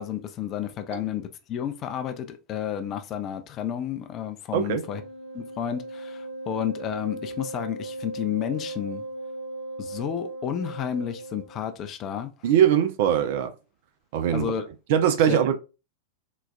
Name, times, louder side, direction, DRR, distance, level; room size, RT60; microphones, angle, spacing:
voice 1, 0.0-5.0 5.3-9.0 9.8-12.3 14.3-14.6 15.3-15.4, left 9 dB, 30° left, 0.4 m, -31 dB
Wind instrument woodwind instrument, 4.6-11.6, right 2 dB, 85° left, 1.0 m, -37 dB
voice 2, 12.4-13.5 14.1-14.5 14.9-15.6, right 9 dB, 50° right, 0.4 m, -21 dB
3.9 x 2.2 x 2.2 m
figure-of-eight pair, 90°, 0 cm